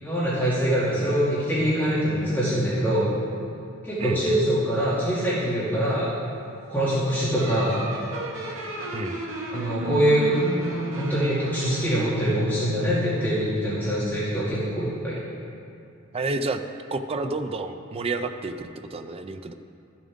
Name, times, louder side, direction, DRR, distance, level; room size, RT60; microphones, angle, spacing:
voice 1, 0.0-3.2 3.8-6.1 6.7-7.8 9.5-10.3 10.7-15.2, equal, 10° left, -11 dB, 2.3 m, -24 dB
voice 2, 4.0-4.4 8.9-9.2 16.1-16.6 16.9-19.5, right 3 dB, 30° right, 8 dB, 0.4 m, -30 dB
sound 1, 7.4-13.4, right 1 dB, 70° right, 1.4 m, -34 dB
13.5 x 7.3 x 3.6 m, 2.6 s
head